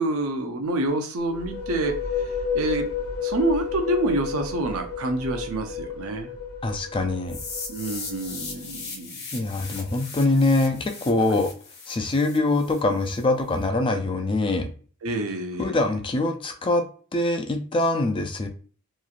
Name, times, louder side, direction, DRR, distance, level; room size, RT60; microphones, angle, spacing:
voice 1, 0.0-2.9 3.2-6.3 7.7-9.2 11.3-11.4 15.0-15.8, right 2 dB, 75° right, 5 dB, 0.5 m, -27 dB
sound 1, 1.2-8.8, left 6 dB, 80° left, 0.7 m, -32 dB
voice 2, 6.6-7.4 9.3-11.5 11.9-14.7 15.6-16.8 17.1-18.5, left 2 dB, 25° left, 5 dB, 0.3 m, -23 dB
sound 2, 7.3-13.2, left 4 dB, 45° left, 1.0 m, -38 dB
3.0 x 2.3 x 2.4 m, 0.40 s
head